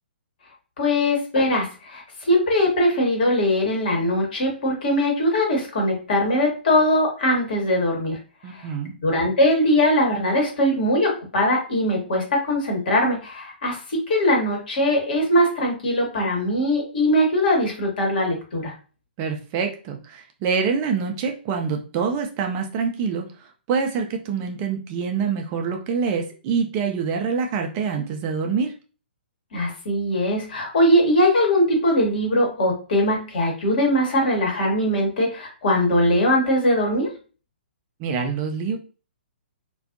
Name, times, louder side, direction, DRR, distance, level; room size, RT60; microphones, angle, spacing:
voice 1, 0.8-8.2 8.5-8.7 9.0-18.7 29.5-37.1, left 1 dB, 55° left, 0 dB, 1.1 m, -21 dB
voice 2, 8.4-9.0 19.2-28.8 38.0-38.8, right 5 dB, 30° right, 3 dB, 0.4 m, -26 dB
2.4 x 2.2 x 2.4 m, 0.36 s
figure-of-eight pair, 125°, 6 cm